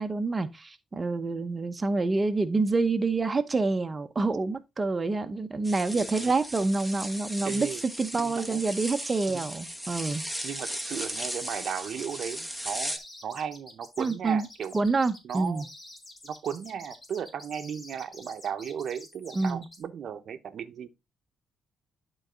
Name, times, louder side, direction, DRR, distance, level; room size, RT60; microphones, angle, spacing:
voice 1, 0.0-7.7 8.0-10.2 14.0-14.5 14.7-15.6 19.3-19.6, right 3 dB, 25° right, 0.9 m, -27 dB
sound 1, 5.6-13.0, equal, 5° left, 1.3 m, -37 dB
voice 2, 5.6-6.3 7.4-7.8 8.2-8.6 9.3-9.4 10.4-14.7 15.2-15.7 16.2-20.9, right 8 dB, 65° right, 0.9 m, -36 dB
sound 2, 10.0-19.8, left 1 dB, 30° left, 3.1 m, -49 dB
11.5 x 4.0 x 3.8 m
cardioid pair, 90°, 0 cm